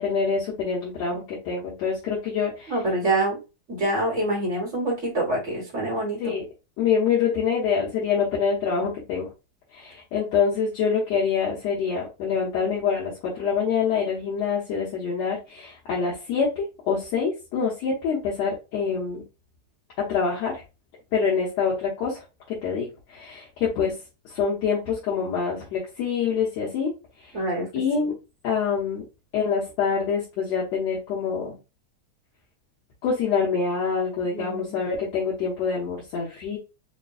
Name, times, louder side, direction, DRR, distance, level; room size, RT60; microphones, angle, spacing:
voice 1, 0.0-2.7 6.2-6.4 6.8-9.3 9.7-19.2 20.1-20.6 21.1-22.2 22.6-24.0 24.3-26.9 27.2-27.3 27.7-28.1 28.4-29.0 29.3-31.6 33.0-36.6, left 6 dB, 65° left, -5 dB, 2.2 m, -26 dB
voice 2, 2.7-3.4 3.7-6.3 27.3-27.7 34.2-34.8, right 1 dB, 40° right, -2 dB, 1.0 m, -26 dB
6.7 x 2.3 x 2.3 m, 0.28 s
omnidirectional pair, 3.4 m